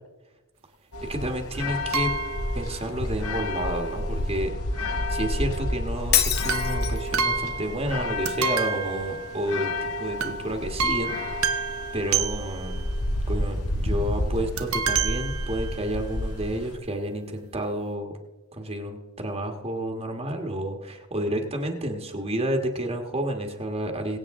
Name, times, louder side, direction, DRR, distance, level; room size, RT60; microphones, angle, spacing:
sound 1, 0.9-16.8, left 1 dB, 90° left, 1.5 m, -30 dB
voice 1, 1.0-2.1 2.5-12.8 13.3-18.2 18.5-24.2, right 1 dB, 30° right, 4 dB, 1.5 m, -30 dB
sound 2, 1.9-2.7 6.5-9.7 10.2-10.4 10.8-12.8 14.6-16.0 16.7-16.8 17.0-17.1, right 5 dB, 70° right, 1.1 m, -29 dB
Shatter, 6.1-7.1, left 10 dB, 50° left, 0.9 m, -25 dB
23.0 x 8.7 x 3.7 m, 1.1 s
head